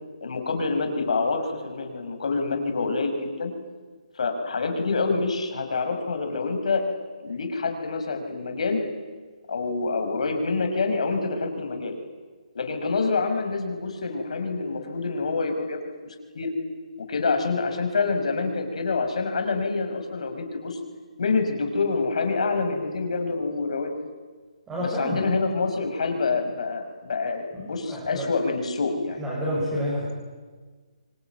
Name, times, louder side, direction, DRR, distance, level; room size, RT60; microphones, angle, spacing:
voice 1, 0.2-3.5 4.2-6.8 7.2-8.8 9.5-11.9 12.5-16.5 17.0-20.8 21.2-23.9 24.8-29.2, left 4 dB, 60° left, 5 dB, 5.7 m, -27 dB
voice 2, 24.7-25.2 27.5-28.3 29.2-30.1, equal, 10° right, -6 dB, 7.0 m, -29 dB
25.5 x 25.0 x 9.3 m, 1.4 s
hypercardioid pair, 165°, 4 cm